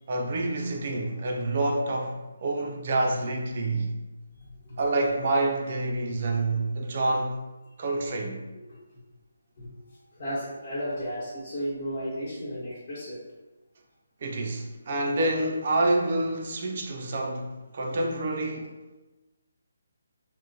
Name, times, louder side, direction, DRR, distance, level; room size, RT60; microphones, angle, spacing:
voice 1, 0.1-3.9 4.8-7.4 7.8-8.4 14.2-18.8, right 2 dB, 45° right, 0.5 m, -27 dB
voice 2, 4.4-4.8 8.6-8.8 9.6-9.7 10.1-13.2, equal, 50° left, 1.0 m, -34 dB
3.6 x 2.1 x 2.7 m
figure-of-eight pair, 155°, 0 cm